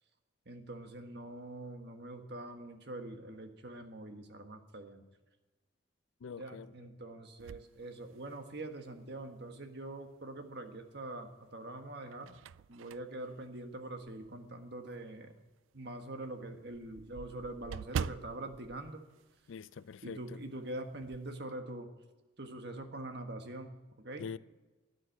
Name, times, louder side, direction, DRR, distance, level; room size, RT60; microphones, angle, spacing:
voice 1, 0.4-5.0 6.3-12.4 12.7-15.3 15.7-19.0 20.0-21.9 22.4-24.3, right 2 dB, 60° right, 1.6 m, -44 dB
voice 2, 6.2-6.7 19.5-20.4 24.2-24.4, left 6 dB, 85° left, 0.4 m, -44 dB
sound 1, 7.4-8.7 9.3-9.4 10.8-11.3 11.8-14.5 14.9-15.0 15.4-15.5 15.8-15.9 16.1-19.9 20.2-20.4 20.7-21.3, right 7 dB, 90° right, 0.3 m, -44 dB
12.5 x 10.0 x 7.5 m
head